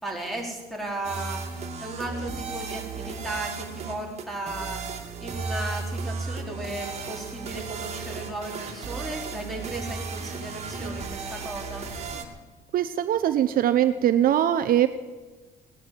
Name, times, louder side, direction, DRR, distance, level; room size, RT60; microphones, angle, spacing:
voice 1, 0.0-1.4 1.8-4.8 5.2-11.9, right 2 dB, ahead, 0 dB, 4.1 m, -35 dB
sound 1, 1.0-12.2, right 4 dB, 40° right, 2.5 m, -35 dB
voice 2, 12.7-14.9, right 11 dB, 60° right, 10 dB, 0.8 m, -21 dB
18.0 x 10.0 x 7.6 m, 1.2 s
cardioid pair, 110°, 17 cm